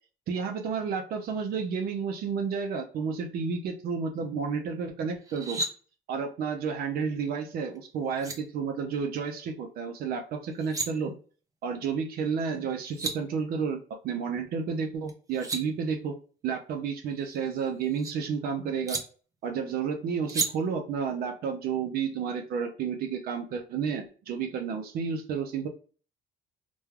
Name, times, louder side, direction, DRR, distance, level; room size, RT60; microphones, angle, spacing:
voice 1, 0.3-5.6 6.1-11.1 11.6-16.2 16.4-19.0 19.4-25.7, right 6 dB, 65° right, 4 dB, 0.5 m, -31 dB
sound 1, 5.2-5.7 7.8-7.9 8.2-8.4 10.4-10.9 12.5-12.6 12.8-13.1 15.1-15.6 17.1-18.1 18.9-19.0 20.3-20.5, right 3 dB, 20° right, 0.6 m, -33 dB
3.1 x 2.2 x 2.3 m, 0.40 s
cardioid pair, 110°, 17 cm